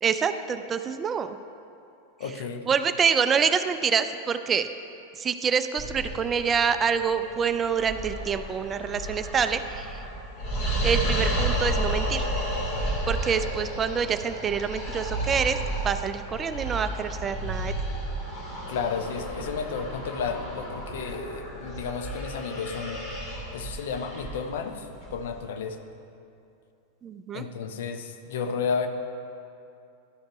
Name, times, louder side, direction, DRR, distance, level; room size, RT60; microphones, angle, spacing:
voice 1, 0.0-1.4 2.7-4.7 5.2-10.0 10.8-12.3 13.1-15.6 15.8-17.7 27.0-27.4, right 6 dB, 20° right, 10 dB, 0.3 m, -26 dB
voice 2, 2.2-2.7 18.7-23.2 23.5-25.8 27.3-28.9, left 6 dB, 55° left, 7 dB, 0.6 m, -32 dB
sound 1, 5.8-25.4, right 1 dB, 40° left, 2.3 m, -32 dB
11.5 x 5.2 x 5.0 m, 2.6 s
figure-of-eight pair, 90°, 0 cm